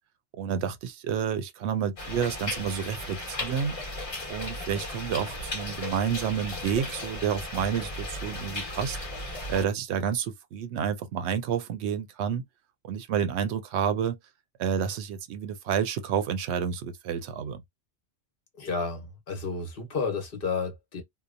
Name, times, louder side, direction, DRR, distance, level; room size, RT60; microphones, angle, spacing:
voice 1, 0.4-3.8 4.3-9.0 9.5-12.4 12.8-14.2 14.6-17.6, right 8 dB, 75° right, 0.8 m, -29 dB
sound 1, 2.0-9.6, left 2 dB, 35° left, 1.0 m, -36 dB
voice 2, 18.6-21.0, left 4 dB, 55° left, 1.1 m, -31 dB
2.8 x 2.0 x 2.5 m
omnidirectional pair, 1.1 m